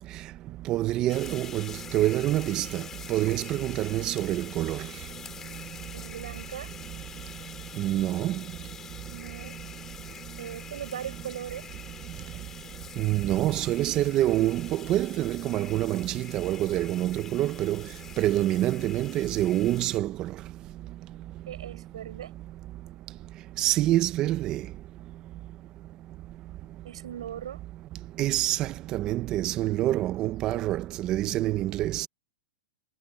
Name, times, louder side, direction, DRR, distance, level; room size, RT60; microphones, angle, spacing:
voice 1, 0.7-1.7 1.9-2.8 3.1-4.8 7.8-8.3 13.0-17.8 18.2-20.1 23.6-24.6 28.2-32.1, right 14 dB, 20° right, 0.6 m, -26 dB
sound 1, 1.1-20.0, left 7 dB, 15° left, 2.8 m, -45 dB
voice 2, 5.9-6.7 9.1-9.6 10.4-11.7 21.5-22.3 26.8-27.6, right 10 dB, 75° right, 6.8 m, -39 dB
supercardioid pair, 170°, 3 cm